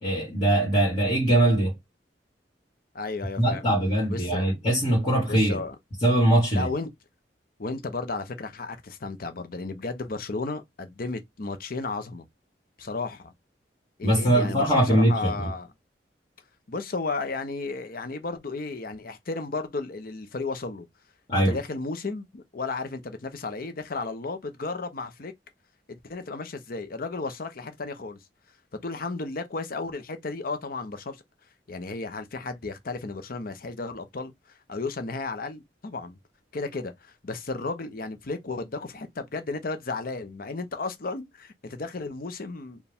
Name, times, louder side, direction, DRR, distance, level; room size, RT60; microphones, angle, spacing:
voice 1, 0.0-1.7 3.4-5.6 6.0-6.7 14.0-15.5 21.3-21.6, right 1 dB, 35° left, 1.7 m, -22 dB
voice 2, 2.9-3.6 4.1-4.5 5.3-5.8 6.5-6.9 7.6-12.3 12.8-13.3 14.0-15.7 16.7-20.9 21.3-25.3 25.9-28.2 28.8-31.2 31.7-34.3 34.7-36.2 36.5-42.8, left 3 dB, 55° left, 0.7 m, -33 dB
4.6 x 2.3 x 3.5 m
head